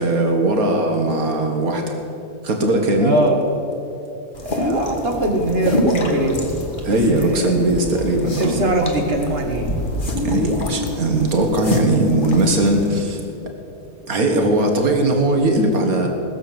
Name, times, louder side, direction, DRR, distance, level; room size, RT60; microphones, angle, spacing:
voice 1, 0.0-2.0 2.4-3.2 6.8-8.6 10.2-13.2 14.1-16.1, right 2 dB, 70° right, 3 dB, 1.8 m, -19 dB
voice 2, 3.0-3.4 4.5-6.4 6.9-7.6 8.3-9.7, right 1 dB, 40° right, 2 dB, 1.9 m, -21 dB
sound 1, 4.3-12.9, left 1 dB, 35° left, 1.6 m, -26 dB
19.0 x 7.1 x 7.6 m, 2.7 s
omnidirectional pair, 1.6 m